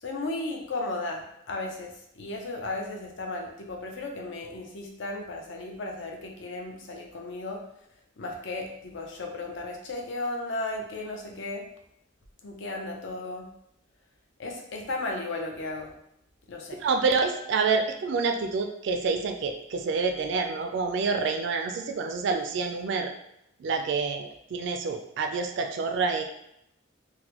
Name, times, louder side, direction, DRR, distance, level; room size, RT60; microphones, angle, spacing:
voice 1, 0.0-7.6 8.2-11.7 12.4-13.5 14.4-15.9 16.5-16.8, left 2 dB, 60° left, 2 dB, 0.5 m, -35 dB
voice 2, 16.8-23.1 23.6-26.2, right 4 dB, 60° right, 5 dB, 0.3 m, -27 dB
3.8 x 2.1 x 2.9 m, 0.77 s
head